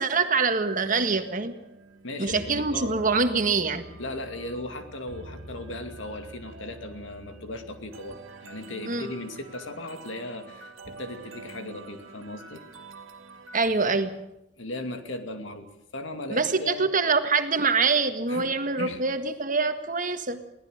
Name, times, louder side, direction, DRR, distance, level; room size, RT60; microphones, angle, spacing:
voice 1, 0.0-1.5 2.2-3.8 8.9-9.1 13.5-14.2 16.3-20.4, right 4 dB, 40° right, 8 dB, 1.7 m, -25 dB
sound 1, 1.0-13.7, right 2 dB, 80° right, 2.4 m, -46 dB
voice 2, 2.0-3.0 4.0-12.6 14.6-15.7 15.9-16.8 18.3-18.5 18.8-19.0, left 1 dB, 70° left, 6 dB, 2.5 m, -37 dB
23.5 x 17.5 x 6.5 m, 0.89 s
head